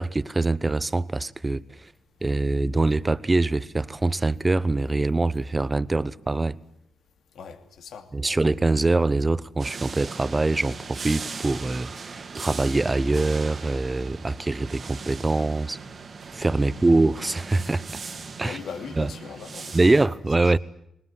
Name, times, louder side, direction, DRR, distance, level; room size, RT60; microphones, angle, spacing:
voice 1, 0.0-1.9 2.2-6.6 8.1-15.8 16.3-17.8 18.4-18.6 19.0-19.1 19.7-20.6, right 2 dB, 30° right, 1.0 m, -24 dB
voice 2, 7.3-8.4 16.6-16.9 18.4-20.0, left 6 dB, 75° left, 2.6 m, -40 dB
sound 1, 9.6-20.1, right 4 dB, 55° right, 2.0 m, -39 dB
20.5 x 20.0 x 9.8 m
supercardioid pair, 45°, 0 cm